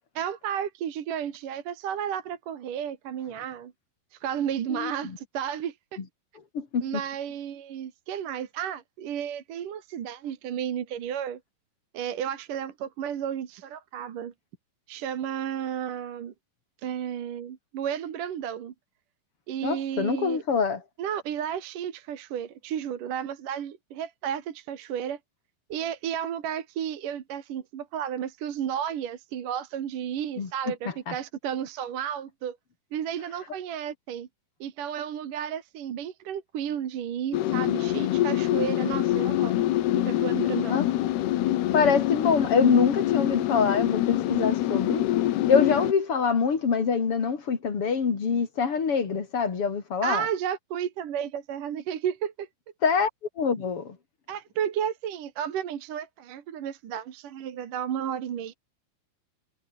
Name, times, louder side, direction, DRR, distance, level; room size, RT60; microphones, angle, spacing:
voice 1, 0.2-3.7 4.1-6.0 6.8-11.4 11.9-14.3 14.9-16.3 16.8-18.7 19.5-20.4 21.0-25.2 25.7-32.6 32.9-34.3 34.6-39.7 40.0-40.8 50.0-52.5 54.3-58.5, right 9 dB, 55° right, 3.0 m, -32 dB
voice 2, 4.7-5.2 6.5-6.9 19.6-20.8 30.4-30.5 31.1-31.2 40.7-40.9 41.7-45.1 45.5-50.3 52.8-53.1 53.4-54.0, left 5 dB, 35° left, 3.1 m, -25 dB
sound 1, 37.3-45.9, left 14 dB, 70° left, 3.0 m, -25 dB
omnidirectional pair, 5.4 m